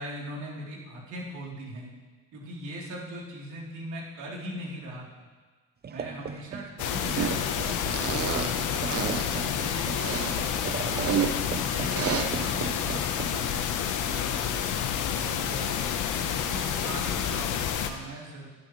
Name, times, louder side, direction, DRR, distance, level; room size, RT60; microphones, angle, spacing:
voice 1, 0.0-1.9 2.3-5.3 5.9-9.9 10.4-14.7 15.1-15.9 16.2-18.5, right 1 dB, 60° right, -3 dB, 3.4 m, -40 dB
sound 1, 5.8-16.3, right 6 dB, 30° right, 0.7 m, -39 dB
sound 2, 6.8-17.9, left 8 dB, 65° left, 1.1 m, -29 dB
sound 3, 7.1-7.4 7.9-8.5 8.9-9.2 9.9-11.3 11.9-12.2, right 7 dB, 45° right, 1.1 m, -29 dB
15.0 x 11.0 x 3.2 m, 1.4 s
supercardioid pair, 80°, 33 cm